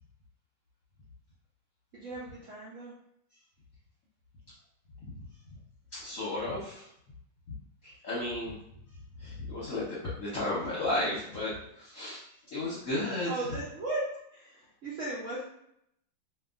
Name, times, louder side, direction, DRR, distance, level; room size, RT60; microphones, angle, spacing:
voice 1, 1.9-2.9 13.2-14.0 14.3-15.4, right 2 dB, 85° right, -6 dB, 0.6 m, -36 dB
voice 2, 5.9-6.8 7.8-8.6 9.2-12.2 12.5-13.3, left 2 dB, 60° left, -8 dB, 1.0 m, -33 dB
2.9 x 2.6 x 2.4 m, 0.72 s
omnidirectional pair, 2.1 m